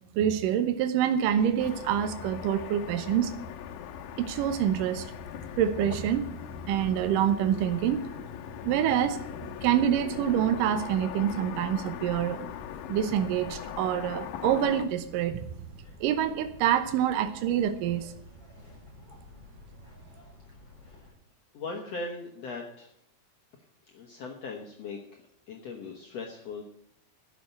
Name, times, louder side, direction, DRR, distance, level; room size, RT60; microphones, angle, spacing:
voice 1, 0.2-3.3 4.2-5.1 5.6-6.3 6.7-8.0 8.6-9.2 9.6-12.5 12.9-15.5 16.0-18.1, right 10 dB, 80° right, 9 dB, 2.4 m, -26 dB
sound 1, 1.2-21.1, left 3 dB, 40° left, 6.1 m, -51 dB
Car passing by / Traffic noise roadway noise, 1.6-14.9, left 9 dB, 80° left, 2.4 m, -40 dB
voice 2, 20.8-21.1 21.5-22.9 23.8-26.6, left 3 dB, 60° left, 1 dB, 2.0 m, -39 dB
11.5 x 6.9 x 9.2 m, 0.74 s
omnidirectional pair, 4.0 m